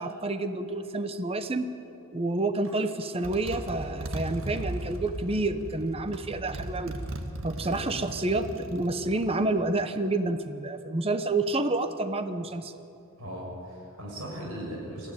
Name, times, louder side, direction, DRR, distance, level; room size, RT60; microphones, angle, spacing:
voice 1, 0.0-1.7 2.1-6.9 7.4-12.7, right 2 dB, 25° right, 9 dB, 0.9 m, -29 dB
Motorcycle, 2.7-2.8 3.2-9.4, right 1 dB, 70° right, 1.7 m, -37 dB
voice 2, 13.2-15.1, equal, 85° right, -2 dB, 6.2 m, -38 dB
21.0 x 15.0 x 9.5 m, 2.7 s
head